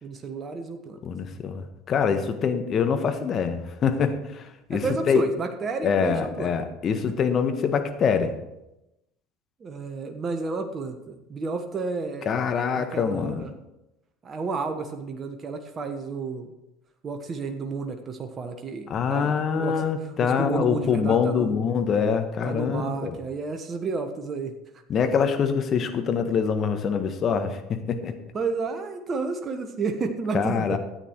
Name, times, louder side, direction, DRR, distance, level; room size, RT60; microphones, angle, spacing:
voice 1, 0.0-1.0 4.7-6.5 9.6-12.4 12.8-13.5 14.2-16.5 17.0-21.6 22.4-24.5 28.3-30.8, right 4 dB, 35° right, 6 dB, 1.3 m, -31 dB
voice 2, 1.0-5.2 5.8-8.3 12.2-13.4 18.9-23.2 24.9-28.1 30.3-30.8, left 6 dB, 40° left, 7 dB, 1.4 m, -25 dB
13.0 x 9.0 x 4.6 m, 0.92 s
hypercardioid pair, 70°, 0 cm